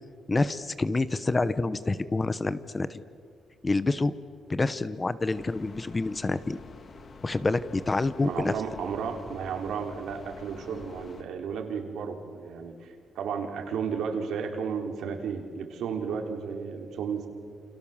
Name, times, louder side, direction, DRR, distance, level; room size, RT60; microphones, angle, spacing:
voice 1, 0.3-3.0 3.6-4.1 4.5-6.6 7.2-8.5, left 3 dB, 20° left, 14 dB, 0.9 m, -27 dB
sound 1, 5.3-11.2, left 4 dB, 40° left, 1.8 m, -48 dB
voice 2, 8.2-17.3, right 6 dB, 80° right, 4 dB, 3.8 m, -33 dB
28.5 x 27.0 x 7.3 m, 2.2 s
cardioid pair, 140°, 0 cm